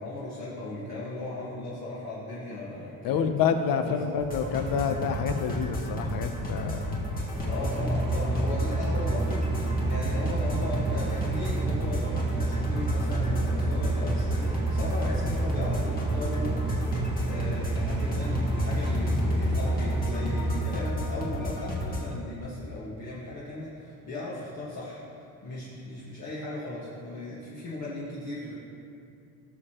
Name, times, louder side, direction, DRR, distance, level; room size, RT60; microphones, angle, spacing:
voice 1, 0.0-3.2 3.8-4.1 7.1-16.5 16.9-28.5, left 2 dB, 45° left, -8 dB, 1.7 m, -37 dB
voice 2, 3.0-7.0, left 6 dB, 65° left, 7 dB, 0.8 m, -28 dB
sound 1, 4.2-22.1, equal, 25° left, 1.7 m, -33 dB
sound 2, 7.3-20.6, right 2 dB, 15° right, 1.4 m, -29 dB
16.0 x 6.7 x 3.0 m, 2.5 s
cardioid pair, 150°, 37 cm